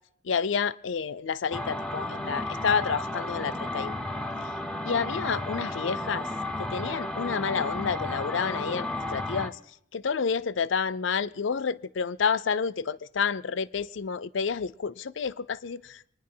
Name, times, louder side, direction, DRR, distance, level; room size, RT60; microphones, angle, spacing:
voice 1, 0.2-3.9 4.9-6.3 6.6-9.6 9.9-16.0, left 6 dB, 80° left, 0.5 m, -29 dB
sound 1, 1.5-9.5, left 1 dB, 5° left, 0.7 m, -33 dB
24.5 x 10.0 x 5.6 m
head